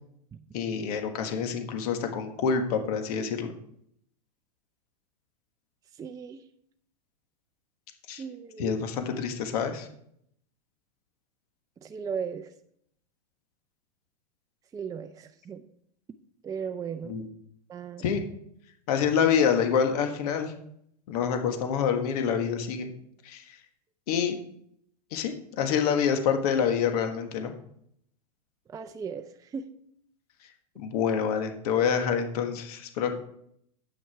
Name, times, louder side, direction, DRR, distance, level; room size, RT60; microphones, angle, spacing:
voice 1, 0.5-3.5 8.1-8.2 8.6-9.9 17.1-17.3 18.0-18.2 18.9-20.5 21.1-22.9 23.2-23.4 24.1-24.4 25.1-27.5 30.8-33.1, left 7 dB, 65° left, 6 dB, 1.5 m, -27 dB
voice 2, 5.9-6.4 8.2-8.8 11.8-12.5 14.7-15.6 16.4-17.1 17.7-18.1 28.7-29.7, right 6 dB, 15° right, 8 dB, 0.5 m, -37 dB
9.2 x 6.3 x 4.7 m, 0.70 s
hypercardioid pair, 115°, 21 cm